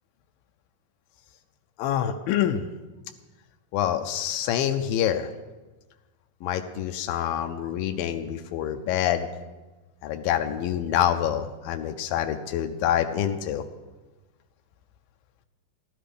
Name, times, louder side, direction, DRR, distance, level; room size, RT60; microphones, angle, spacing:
voice 1, 1.8-2.6 3.7-5.3 6.4-9.3 10.0-13.6, left 10 dB, 90° left, 6 dB, 2.4 m, -26 dB
15.5 x 12.0 x 5.1 m, 1.2 s
omnidirectional pair, 4.0 m